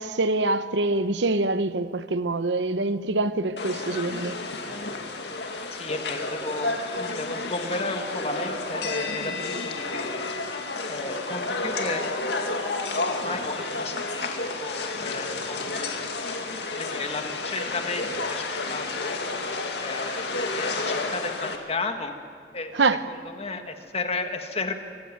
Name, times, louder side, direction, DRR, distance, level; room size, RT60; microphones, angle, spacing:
voice 1, 0.0-4.4 22.7-23.0, right 2 dB, 80° right, 0.9 m, -25 dB
sound 1, 3.6-21.6, left 3 dB, 65° left, 2.3 m, -31 dB
voice 2, 5.7-10.1 10.9-12.0 13.2-16.4 16.7-19.2 19.8-22.1 22.5-22.7 23.1-24.7, left 3 dB, 35° left, 1.8 m, -34 dB
25.5 x 16.0 x 9.3 m
head